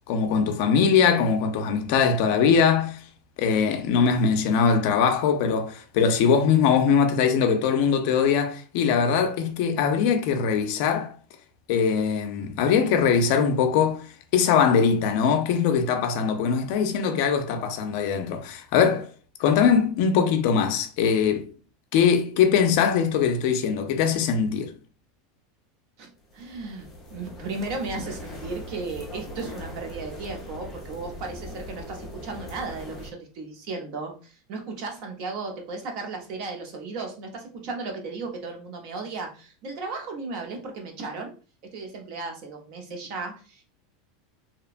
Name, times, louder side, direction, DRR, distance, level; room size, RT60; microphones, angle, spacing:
voice 1, 0.1-3.0 3.4-11.1 11.7-19.1 19.4-21.5 21.9-24.7, left 6 dB, 50° left, 0.4 m, -22 dB
voice 2, 26.0-41.3 41.7-43.6, right 3 dB, 45° right, 0.7 m, -35 dB
sound 1, 26.3-33.1, left 1 dB, 10° left, 0.6 m, -40 dB
2.8 x 2.1 x 2.4 m
supercardioid pair, 165°, 0 cm